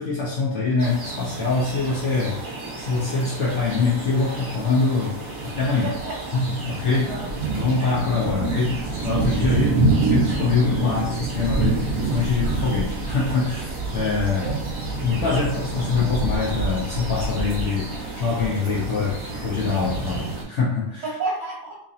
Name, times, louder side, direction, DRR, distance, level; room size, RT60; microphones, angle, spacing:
voice 1, 0.0-2.4 2.8-5.2 5.4-5.9 6.3-7.1 7.5-14.4 15.0-21.0, left 4 dB, 60° left, -5 dB, 1.0 m, -24 dB
sound 1, 0.8-20.4, right 3 dB, 35° right, 1.4 m, -27 dB
voice 2, 5.8-7.3 14.2-14.6 21.0-21.8, right 3 dB, 60° right, -4 dB, 1.1 m, -32 dB
3.7 x 3.1 x 2.7 m, 0.76 s
omnidirectional pair, 1.5 m